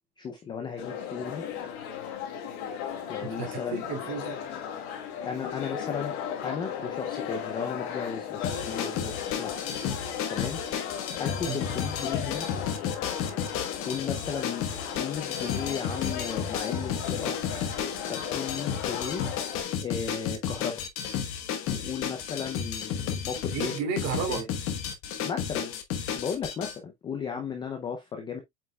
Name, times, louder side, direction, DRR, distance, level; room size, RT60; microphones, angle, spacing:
voice 1, 0.2-1.4 3.1-3.8 5.2-6.2 6.4-9.6 10.3-10.6 11.2-12.5 13.9-14.6 14.9-17.6 18.1-19.2 19.8-20.8 21.7-23.7 24.3-24.5 25.2-25.7 26.1-28.4, left 6 dB, 10° left, 0.5 m, -35 dB
sound 1, 0.8-19.6, left 8 dB, 45° left, 3.3 m, -36 dB
voice 2, 3.4-4.4 11.5-11.6 23.5-24.4, right 5 dB, 35° right, 3.1 m, -32 dB
sound 2, 8.4-26.8, left 8 dB, 30° left, 1.2 m, -32 dB
7.9 x 5.3 x 2.3 m
supercardioid pair, 160°, 45 cm